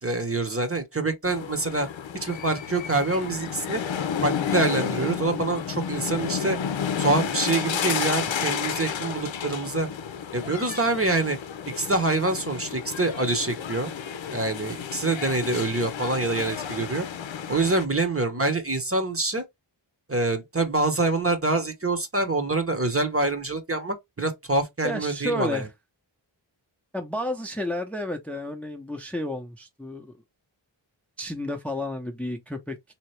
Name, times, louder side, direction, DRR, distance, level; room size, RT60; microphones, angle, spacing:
voice 1, 0.0-1.9 2.1-3.8 4.2-6.6 7.0-9.9 10.3-11.4 11.7-13.9 14.3-17.1 17.5-19.4 20.1-25.7, right 2 dB, 30° right, 0.9 m, -26 dB
sound 1, 1.3-17.9, left 8 dB, 80° left, 0.6 m, -31 dB
voice 2, 24.8-25.7 26.9-30.1 31.2-32.9, left 1 dB, 5° left, 0.7 m, -31 dB
3.7 x 2.9 x 3.2 m
wide cardioid pair, 75°, 45 cm